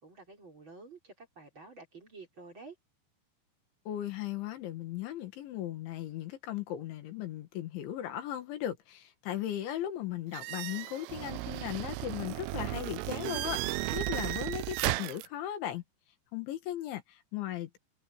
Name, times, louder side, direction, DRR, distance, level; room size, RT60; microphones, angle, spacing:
voice 1, 0.0-2.8, right 3 dB, 25° right, 4.8 m, -50 dB
voice 2, 3.9-15.8 16.3-17.8, left 12 dB, 85° left, 4.3 m, -37 dB
sound 1, 10.3-15.3, right 18 dB, 85° right, 2.4 m, -35 dB
omnidirectional pair, 5.2 m